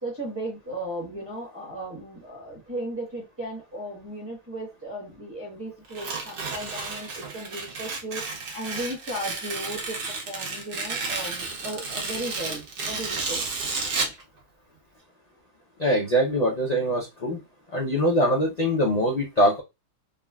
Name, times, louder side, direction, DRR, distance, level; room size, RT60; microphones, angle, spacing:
voice 1, 0.0-13.4, right 1 dB, 10° right, -2 dB, 0.9 m, -36 dB
Tearing, 5.9-14.2, right 4 dB, 55° right, 0.6 m, -32 dB
voice 2, 15.8-17.4 17.7-19.6, equal, 75° left, -1 dB, 0.3 m, -23 dB
3.5 x 2.2 x 2.3 m, 0.24 s
omnidirectional pair, 1.6 m